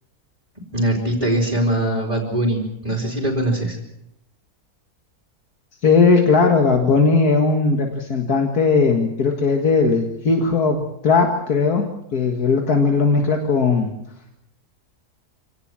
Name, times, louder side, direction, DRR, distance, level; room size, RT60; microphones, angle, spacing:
voice 1, 0.7-3.8, right 1 dB, 25° right, 0 dB, 3.9 m, -22 dB
voice 2, 5.8-13.9, left 4 dB, 75° left, 3 dB, 2.3 m, -18 dB
25.5 x 18.0 x 7.6 m, 0.81 s
omnidirectional pair, 1.6 m